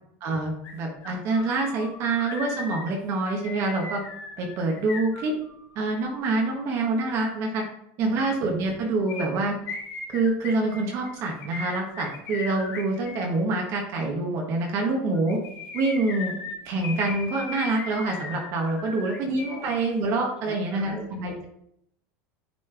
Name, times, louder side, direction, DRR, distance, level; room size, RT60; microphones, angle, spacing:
voice 1, 0.2-4.0 4.4-5.3 5.7-7.6 8.0-9.5 10.1-15.4 15.7-16.3 16.6-21.4, right 2 dB, 50° right, 1 dB, 1.2 m, -26 dB
sound 1, 0.6-0.7 1.0-5.8 9.1-13.3 15.1-19.8 20.0-20.1, left 4 dB, 45° left, 2.3 m, -38 dB
voice 2, 8.0-8.4 19.5-19.7 20.4-21.4, right 2 dB, 15° right, -1 dB, 1.5 m, -44 dB
9.2 x 3.2 x 3.4 m, 0.76 s
supercardioid pair, 130°, 6 cm